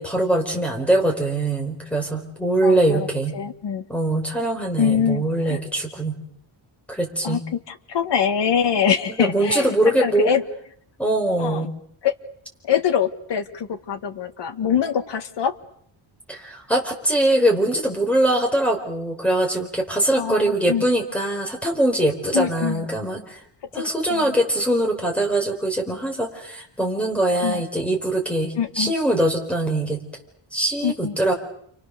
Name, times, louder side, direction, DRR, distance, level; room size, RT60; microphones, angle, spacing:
voice 1, 0.0-3.4 3.9-6.2 6.9-7.4 9.2-10.3 11.0-11.7 16.3-23.4 23.7-30.0 30.5-31.3, right 1 dB, 5° left, 0 dB, 4.9 m, -22 dB
voice 2, 2.6-3.1 3.3-3.8 4.8-5.6 7.2-10.4 11.3-11.7 12.0-12.1 12.6-15.6 20.2-20.8 22.3-22.9 23.7-23.8 24.1-24.3 27.4-27.6 28.6-28.9 30.8-31.2, left 8 dB, 55° left, 7 dB, 1.9 m, -24 dB
29.5 x 25.5 x 6.9 m, 0.67 s
wide cardioid pair, 170°, 49 cm